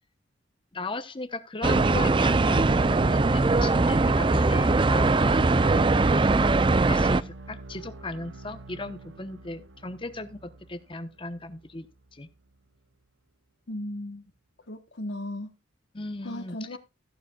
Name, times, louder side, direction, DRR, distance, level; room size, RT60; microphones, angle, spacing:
voice 1, 0.7-6.0 6.9-11.9 12.1-12.3 15.9-16.8, left 2 dB, 30° left, 0.9 m, -37 dB
sound 1, 1.6-7.2, right 3 dB, 25° right, 0.4 m, -21 dB
sound 2, 2.0-12.0, right 2 dB, 90° right, 0.8 m, -43 dB
voice 2, 13.7-14.2 14.7-15.5 16.2-16.8, left 1 dB, 70° left, 1.2 m, -36 dB
14.5 x 9.9 x 2.3 m
head